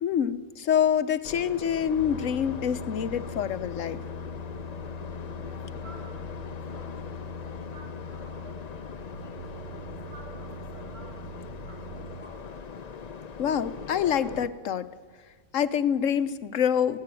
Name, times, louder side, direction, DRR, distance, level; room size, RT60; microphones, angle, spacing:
voice 1, 0.0-4.0 13.4-14.9 15.5-17.0, left 8 dB, 80° left, 12 dB, 1.2 m, -26 dB
sound 1, 1.2-14.5, left 6 dB, 40° left, 0.6 m, -41 dB
sound 2, 1.9-12.2, left 2 dB, 65° right, 2.3 m, -41 dB
voice 2, 5.4-8.8 9.2-12.6, right 2 dB, 50° right, -2 dB, 7.5 m, -53 dB
17.0 x 16.5 x 9.1 m, 1.4 s
omnidirectional pair, 1.3 m